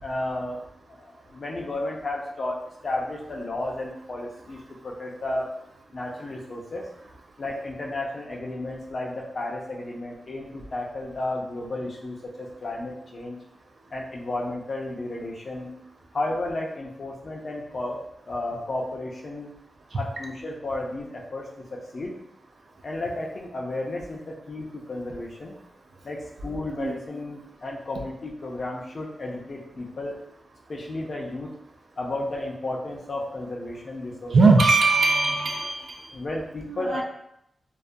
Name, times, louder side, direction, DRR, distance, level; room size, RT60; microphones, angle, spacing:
voice 1, 0.0-0.6 0.9-5.5 5.9-6.9 7.4-13.4 13.9-15.8 16.1-19.5 19.9-22.1 22.8-25.5 26.0-30.2 30.7-31.5 32.0-34.5 36.1-37.0, left 2 dB, 55° left, -1 dB, 0.5 m, -33 dB
voice 2, 34.3-36.0 36.7-37.0, right 3 dB, 70° right, 2 dB, 0.4 m, -20 dB
2.3 x 2.1 x 2.6 m, 0.77 s
wide cardioid pair, 85°, 0 cm